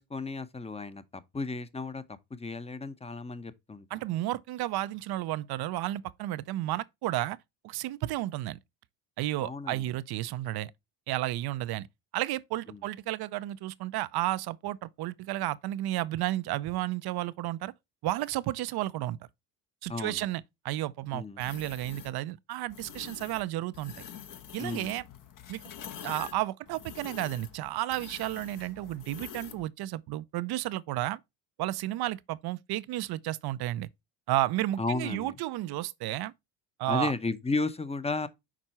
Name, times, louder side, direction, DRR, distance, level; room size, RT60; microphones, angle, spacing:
voice 1, 0.0-2.0 2.3-3.9 9.4-9.9 12.7-12.8 19.9-20.3 21.1-21.4 24.6-25.0 34.8-35.3 36.9-38.3, left 3 dB, 15° left, 0.8 m, -34 dB
voice 2, 3.9-7.4 7.6-8.6 9.2-10.7 11.1-11.9 12.1-17.7 18.0-19.2 19.8-23.9 24.5-25.0 25.5-25.6 26.0-31.2 31.6-33.9 34.3-36.3 36.8-37.1, right 15 dB, 50° right, 0.6 m, -32 dB
sound 1, 21.4-22.1 22.7-23.4 23.7-29.7, left 8 dB, 40° left, 0.9 m, -46 dB
6.1 x 4.4 x 4.2 m
hypercardioid pair, 75°, 48 cm